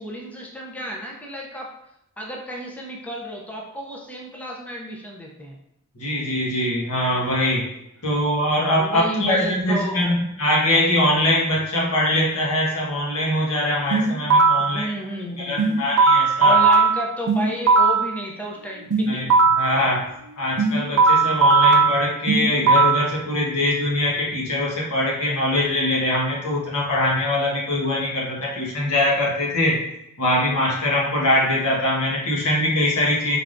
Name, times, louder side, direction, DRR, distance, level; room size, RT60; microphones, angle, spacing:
voice 1, 0.0-1.7 2.2-5.6 8.8-10.0 14.6-15.9 16.4-19.2, equal, 5° left, -2 dB, 0.5 m, -32 dB
voice 2, 5.9-7.7 8.0-14.9 15.4-16.6 19.1-19.3 19.5-20.1 20.4-29.8 30.2-33.4, left 1 dB, 80° left, -4 dB, 1.3 m, -22 dB
sound 1, 13.9-14.8 15.6-18.1 18.9-19.8 20.6-23.1, right 4 dB, 80° right, 0.5 m, -17 dB
4.6 x 3.3 x 2.5 m, 0.82 s
head